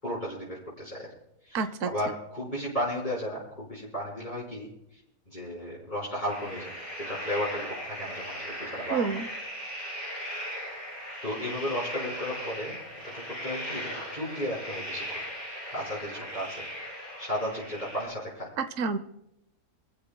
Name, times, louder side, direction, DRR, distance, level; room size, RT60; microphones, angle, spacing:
voice 1, 0.0-1.1 1.4-5.0 5.3-9.1 11.2-12.7 13.0-15.2 15.7-16.6 17.2-18.5, equal, 30° left, -5 dB, 5.7 m, -34 dB
voice 2, 1.5-1.9 8.9-9.3 18.6-19.0, right 5 dB, 60° right, 10 dB, 1.1 m, -28 dB
sound 1, 6.3-18.0, equal, 90° left, 8.3 m, -38 dB
26.0 x 15.0 x 2.3 m, 0.81 s
omnidirectional pair, 1.7 m